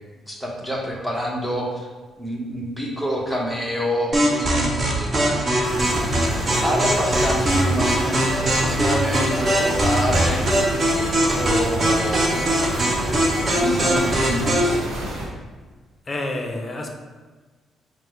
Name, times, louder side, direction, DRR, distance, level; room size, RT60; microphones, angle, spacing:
voice 1, 0.3-1.9 2.2-5.4 6.6-10.5 11.3-12.6 13.5-14.9, equal, 5° right, -2 dB, 0.9 m, -27 dB
sound 1, 4.1-14.8, right 1 dB, 35° right, 0.8 m, -21 dB
sound 2, 5.6-15.3, right 1 dB, 70° right, 1.1 m, -30 dB
voice 2, 16.1-16.9, left 2 dB, 30° left, 2 dB, 0.6 m, -28 dB
4.0 x 2.1 x 4.4 m, 1.4 s
cardioid pair, 90°, 0 cm